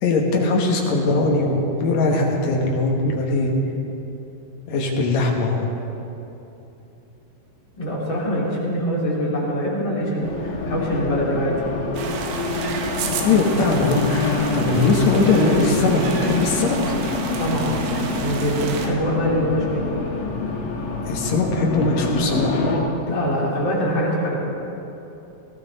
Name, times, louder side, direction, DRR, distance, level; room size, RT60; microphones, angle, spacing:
voice 1, 0.0-3.5 4.7-5.7 13.2-16.9 21.1-22.6, left 3 dB, 75° left, -1 dB, 1.6 m, -20 dB
voice 2, 7.8-11.6 17.4-19.8 23.1-24.3, equal, 30° left, -6 dB, 2.7 m, -24 dB
Race car auto racing, 10.2-22.8, left 3 dB, 60° left, 2.6 m, -26 dB
sound 1, 11.9-18.9, right 5 dB, 75° right, 3.4 m, -32 dB
19.0 x 15.0 x 4.1 m, 3.0 s
omnidirectional pair, 5.3 m